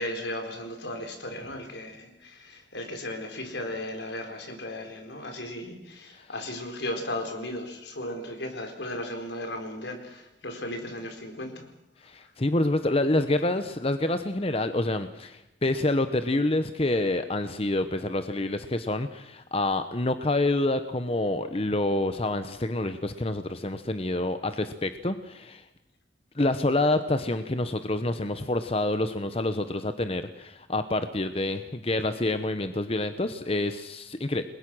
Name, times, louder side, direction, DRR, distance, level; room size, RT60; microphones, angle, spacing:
voice 1, 0.0-11.7, left 1 dB, 80° left, 4 dB, 4.6 m, -36 dB
voice 2, 12.0-25.6 26.3-34.4, left 2 dB, 35° left, 9 dB, 1.0 m, -27 dB
29.5 x 21.5 x 6.3 m, 0.89 s
head